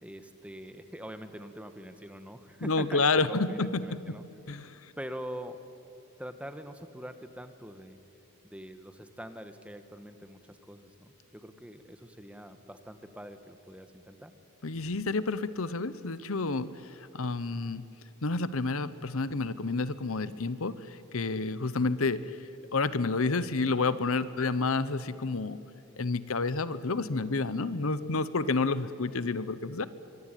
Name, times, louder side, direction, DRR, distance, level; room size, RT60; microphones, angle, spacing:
voice 1, 0.0-4.2 5.0-5.6 6.2-8.0 8.4-14.3, equal, 5° right, 8 dB, 1.3 m, -44 dB
voice 2, 2.6-4.0 4.5-4.9 14.6-17.8 18.2-22.4 22.7-25.6 26.0-29.9, left 3 dB, 70° left, 15 dB, 0.9 m, -30 dB
25.0 x 23.0 x 9.2 m, 2.8 s
head